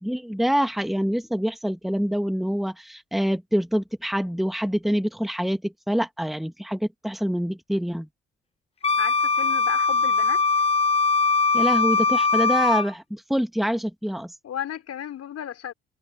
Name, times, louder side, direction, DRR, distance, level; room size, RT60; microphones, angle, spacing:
voice 1, 0.0-8.1 11.5-14.3, equal, ahead, 2.5 m, -26 dB
Wind instrument woodwind instrument, 8.8-12.9, left 4 dB, 20° left, 1.3 m, -21 dB
voice 2, 9.0-10.4 14.4-15.7, left 10 dB, 55° left, 5.5 m, -34 dB
figure-of-eight pair, 45°, 30 cm